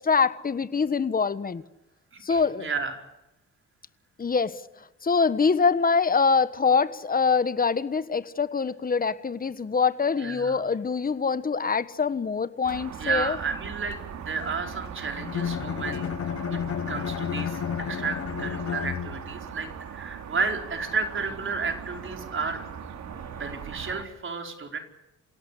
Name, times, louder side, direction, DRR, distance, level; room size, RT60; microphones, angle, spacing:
voice 1, 0.0-1.6 2.2-2.7 4.2-4.6 5.0-13.4, left 5 dB, 30° left, 15 dB, 1.4 m, -24 dB
voice 2, 2.1-2.9 10.2-10.6 13.0-16.1 16.5-16.6 16.9-22.6 23.3-24.8, right 4 dB, 40° right, 5 dB, 4.8 m, -32 dB
sound 1, 12.6-24.0, right 8 dB, 70° right, 2.6 m, -40 dB
Bowed string instrument, 15.2-19.5, left 9 dB, 50° left, 0.9 m, -31 dB
27.5 x 17.0 x 8.4 m, 0.97 s
cardioid pair, 90°, 30 cm